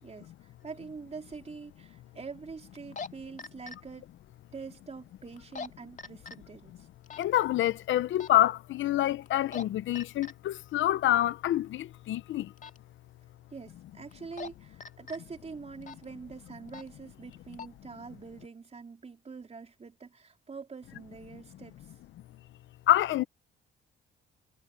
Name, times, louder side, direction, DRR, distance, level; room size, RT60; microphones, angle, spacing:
voice 1, 0.0-4.1 4.5-6.9 13.5-21.8, right 5 dB, 30° right, 3.8 m, -45 dB
sound 1, 0.7-0.8 2.8-3.1 3.4-3.8 5.4-5.7 6.0-6.4 7.1-7.2 8.2-8.4 9.3-9.6 10.0-10.3 12.6-12.8 14.1-14.5 14.8-15.2 15.8-16.0 16.7-16.9 17.3-17.7, left 5 dB, 40° left, 2.1 m, -41 dB
voice 2, 7.2-12.5 22.9-23.2, left 13 dB, 75° left, 0.8 m, -27 dB
cardioid pair, 90°, 20 cm